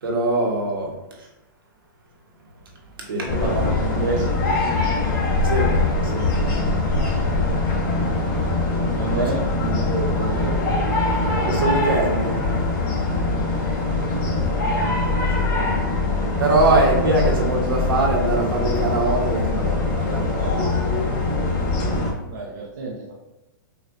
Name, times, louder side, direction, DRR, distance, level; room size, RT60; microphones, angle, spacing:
voice 1, 0.0-0.9 3.0-3.3 5.4-5.7 6.0-6.2 9.1-9.2 11.4-12.4 15.3-15.5 16.4-20.8, right 2 dB, 85° right, -1 dB, 1.4 m, -22 dB
sound 1, 3.3-22.1, left 2 dB, 35° left, 1.3 m, -22 dB
voice 2, 3.3-4.3 9.0-10.6 14.3-14.4 22.3-23.1, right 4 dB, 60° right, -3 dB, 0.8 m, -29 dB
6.4 x 2.6 x 2.6 m, 0.98 s
hypercardioid pair, 160°, 11 cm